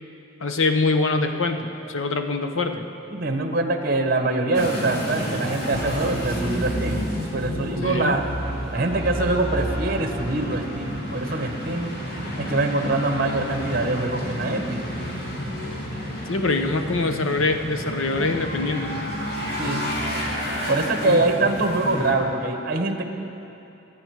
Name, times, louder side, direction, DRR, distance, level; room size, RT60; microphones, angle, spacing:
voice 1, 0.4-2.8 7.8-8.2 16.3-19.0 21.0-21.2, left 3 dB, 85° left, 6 dB, 1.0 m, -24 dB
voice 2, 3.1-7.0 7.3-8.3 8.7-12.0 12.4-14.8 19.6-19.8 20.7-23.0, right 2 dB, 45° right, 5 dB, 1.1 m, -24 dB
sound 1, 4.5-22.1, equal, 50° left, 2.4 m, -31 dB
sound 2, 5.7-11.1, right 1 dB, 25° right, 1.6 m, -32 dB
25.0 x 8.8 x 4.8 m, 3.0 s
head